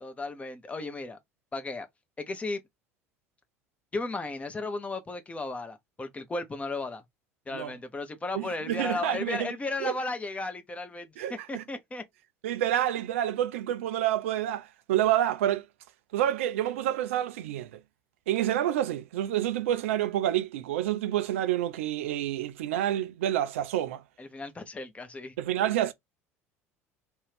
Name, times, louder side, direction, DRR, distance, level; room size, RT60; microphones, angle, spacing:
voice 1, 0.0-1.2 1.5-1.9 2.2-2.6 3.9-7.0 7.5-12.0 24.2-25.3, left 3 dB, 15° left, 0.6 m, -35 dB
voice 2, 8.3-9.5 9.8-9.9 11.2-11.6 12.4-15.6 16.1-17.8 18.3-24.0 25.4-25.9, right 12 dB, 65° right, 0.4 m, -28 dB
2.5 x 2.3 x 3.3 m
figure-of-eight pair, 65°, 8 cm